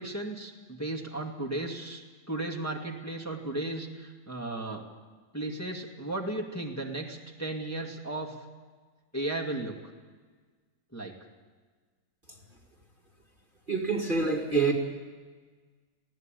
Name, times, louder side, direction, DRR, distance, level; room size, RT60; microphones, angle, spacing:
voice 1, 0.0-2.0 2.3-4.8 5.3-8.4 9.1-9.8 10.9-11.1, right 2 dB, 10° left, 0 dB, 2.3 m, -35 dB
voice 2, 13.7-14.7, right 4 dB, 30° right, 0 dB, 2.2 m, -26 dB
20.5 x 16.5 x 9.2 m, 1.5 s
omnidirectional pair, 1.9 m